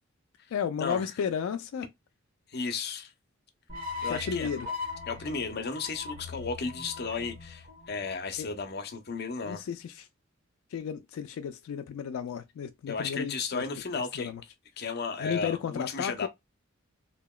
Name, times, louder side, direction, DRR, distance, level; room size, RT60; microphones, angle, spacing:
voice 1, 0.5-1.9 4.0-4.7 8.4-8.5 9.4-10.1 10.7-13.7 14.2-14.4 15.2-16.3, left 7 dB, 85° left, 0.3 m, -33 dB
voice 2, 2.5-3.1 4.0-4.5 5.1-9.6 12.9-14.3 14.8-16.3, left 4 dB, 50° left, 0.6 m, -34 dB
sound 1, 3.7-8.9, left 4 dB, 45° right, 1.0 m, -40 dB
2.9 x 2.8 x 2.2 m
head